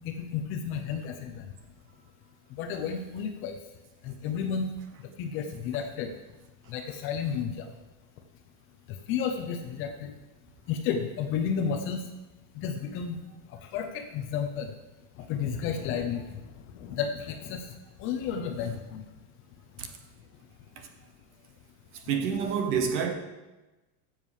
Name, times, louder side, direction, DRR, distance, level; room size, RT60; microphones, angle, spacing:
voice 1, 0.1-1.3 2.6-3.5 4.1-4.7 5.2-6.1 6.7-7.7 9.1-10.1 10.7-12.0 12.6-13.2 13.7-13.9 14.1-14.7 15.3-16.2 16.8-17.6 18.0-19.0, left 7 dB, 25° left, 5 dB, 0.7 m, -31 dB
voice 2, 22.1-23.1, right 6 dB, 25° right, 7 dB, 0.8 m, -27 dB
13.0 x 7.5 x 4.9 m, 1.1 s
supercardioid pair, 165°, 47 cm